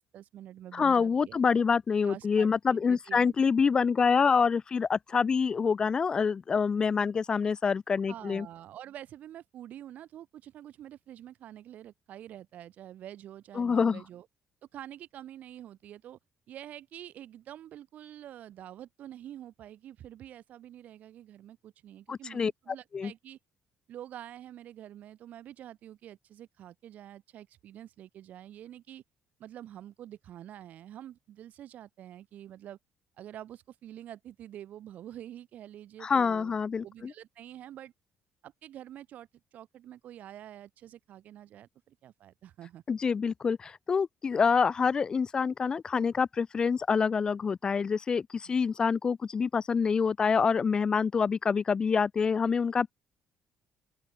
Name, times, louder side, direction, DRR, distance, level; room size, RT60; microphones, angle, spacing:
voice 1, 0.0-1.4 2.0-3.3 8.1-14.3 14.7-16.2 16.5-23.4 23.9-29.0 29.4-32.8 33.2-36.5 36.8-37.9 38.4-42.8 48.4-48.5, right 11 dB, 55° right, 1.7 m, -47 dB
voice 2, 0.7-8.5 13.6-14.0 22.1-22.5 22.9-23.1 36.0-37.1 42.9-52.9, left 5 dB, 25° left, 0.4 m, -26 dB
open air
cardioid pair, 165°, 3 cm